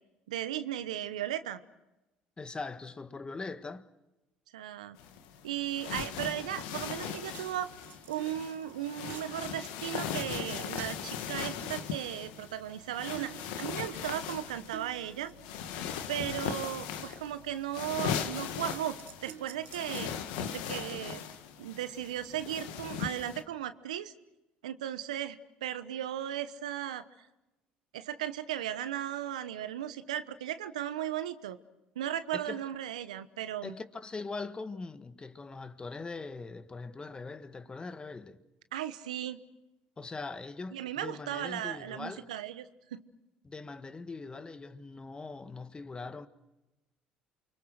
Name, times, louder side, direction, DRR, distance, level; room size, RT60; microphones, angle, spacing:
voice 1, 0.3-1.6 4.5-5.0 5.4-7.7 8.1-15.3 16.1-20.1 20.5-21.2 21.6-24.1 24.6-27.0 27.9-31.6 31.9-33.7 38.7-39.4 40.7-42.6 42.9-43.0, right 11 dB, 90° right, 1.1 m, -36 dB
voice 2, 2.4-3.9 32.3-32.6 33.6-38.4 40.0-42.3 43.4-46.3, left 3 dB, 25° left, 1.7 m, -41 dB
sound 1, 5.0-23.4, left 8 dB, 80° left, 1.7 m, -39 dB
sound 2, 6.8-7.1 7.3-11.2 11.6-12.9 13.2-17.2 17.8-18.1 18.5-20.2, right 12 dB, 65° right, 1.2 m, -50 dB
29.0 x 24.5 x 6.5 m
hypercardioid pair, 65°, 4 cm